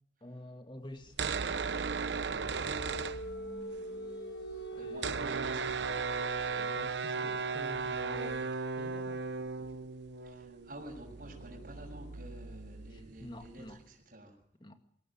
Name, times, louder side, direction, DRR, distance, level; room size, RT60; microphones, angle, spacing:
voice 1, 0.2-1.2 4.7-5.2 6.5-9.2 12.9-13.8 14.6-14.8, left 1 dB, 25° left, 1.9 m, -48 dB
sound 1, 1.0-3.8 4.0-4.1 4.3-13.7, right 4 dB, 80° right, 0.8 m, -36 dB
voice 2, 1.9-2.4 4.8-6.1 10.2-14.3, right 1 dB, 50° right, 6.9 m, -50 dB
sound 2, 2.1-12.9, right 1 dB, 90° left, 4.2 m, -47 dB
22.0 x 17.5 x 8.8 m
head